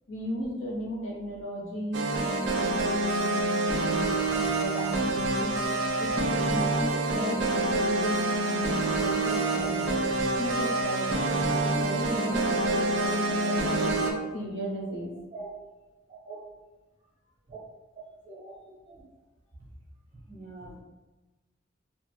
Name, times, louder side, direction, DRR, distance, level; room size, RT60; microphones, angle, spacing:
voice 1, 0.1-2.1 2.5-3.4 3.7-5.6 6.0-9.9 10.4-11.2 11.6-15.1, equal, 75° left, -3 dB, 0.8 m, -35 dB
sound 1, 1.9-14.1, right 2 dB, 65° right, 0.4 m, -27 dB
voice 2, 20.3-20.8, right 3 dB, 35° right, -7 dB, 1.2 m, -44 dB
3.2 x 2.1 x 3.2 m, 1.2 s
head